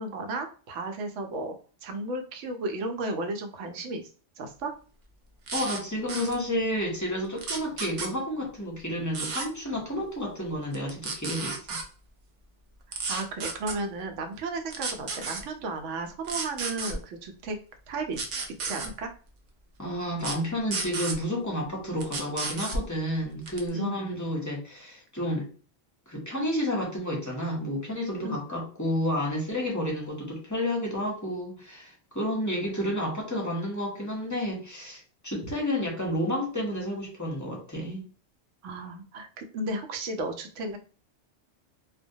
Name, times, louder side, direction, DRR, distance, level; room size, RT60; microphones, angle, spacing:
voice 1, 0.0-1.5 1.8-4.0 4.4-4.7 13.1-17.6 17.9-18.2 18.6-19.1 23.7-24.2 28.2-28.4 38.6-40.8, right 2 dB, 85° right, 6 dB, 0.9 m, -34 dB
voice 2, 5.5-11.8 19.8-25.5 26.1-38.0, equal, 20° left, -2 dB, 0.6 m, -31 dB
sound 1, 5.5-5.8 6.1-6.3 7.4-8.1 9.1-9.5 10.7-11.8 12.9-13.7 14.7-15.4 16.2-16.9 18.1-18.9 20.2-20.4 20.7-21.2 22.0-22.8 23.5-23.7, right 4 dB, 60° right, 0.4 m, -32 dB
2.1 x 2.1 x 2.6 m, 0.39 s
omnidirectional pair, 1.2 m